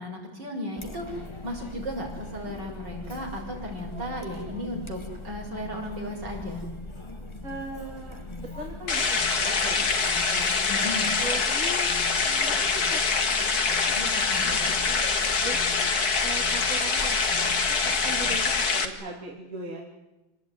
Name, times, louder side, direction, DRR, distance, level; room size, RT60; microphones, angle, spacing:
voice 1, 0.0-6.6 10.7-11.2 13.9-14.6, left 1 dB, 60° right, 0 dB, 7.3 m, -35 dB
Chatter, 0.8-18.7, left 2 dB, 15° left, 1.7 m, -40 dB
voice 2, 7.4-11.9 12.2-14.6 14.9-15.6 16.2-19.8, right 2 dB, 35° right, -1 dB, 3.4 m, -40 dB
sound 1, 8.9-18.8, left 4 dB, 50° left, 2.4 m, -25 dB
27.5 x 19.5 x 9.7 m, 1.0 s
omnidirectional pair, 2.2 m